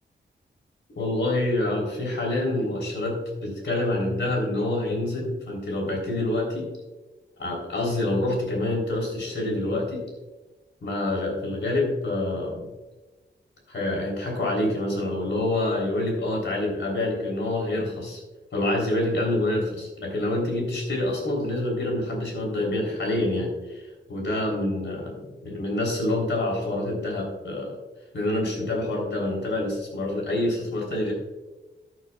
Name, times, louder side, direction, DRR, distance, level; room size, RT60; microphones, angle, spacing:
voice 1, 1.0-6.7 7.4-10.0 10.8-12.7 13.7-18.2 18.5-27.8 28.1-31.1, left 1 dB, 70° left, 0 dB, 3.6 m, -27 dB
13.5 x 9.6 x 2.4 m, 1.2 s
wide cardioid pair, 165°, 20 cm